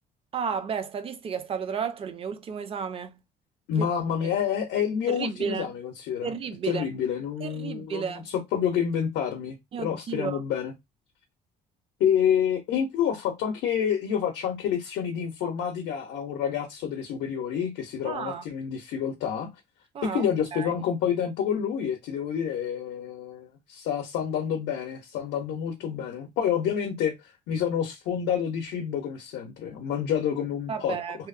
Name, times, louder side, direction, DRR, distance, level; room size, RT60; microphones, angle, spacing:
voice 1, 0.3-3.2 3.8-3.9 4.2-4.3 5.1-5.7 6.2-6.8 7.4-8.3 9.7-10.4 18.0-18.4 19.9-20.7 30.7-31.3, right 6 dB, 35° right, 0.4 m, -32 dB
voice 2, 3.7-6.3 6.6-10.7 12.0-19.5 20.0-27.1 27.5-31.0, left 8 dB, 85° left, 0.6 m, -28 dB
2.8 x 2.0 x 2.4 m
cardioid pair, 110°, 17 cm